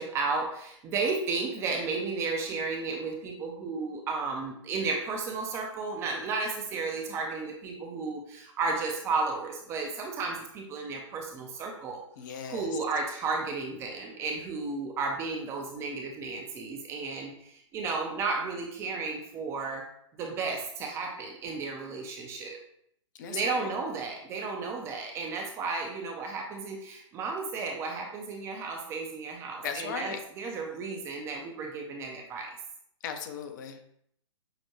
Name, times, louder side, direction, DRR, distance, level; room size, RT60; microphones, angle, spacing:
voice 1, 0.0-12.0 12.5-19.9 20.2-22.6 23.3-32.5, right 4 dB, 15° right, 2 dB, 0.4 m, -33 dB
voice 2, 12.2-12.7 23.2-23.7 29.6-30.2 33.0-33.8, left 7 dB, 35° left, 6 dB, 0.5 m, -37 dB
6.3 x 2.1 x 3.0 m, 0.70 s
figure-of-eight pair, 120°, 16 cm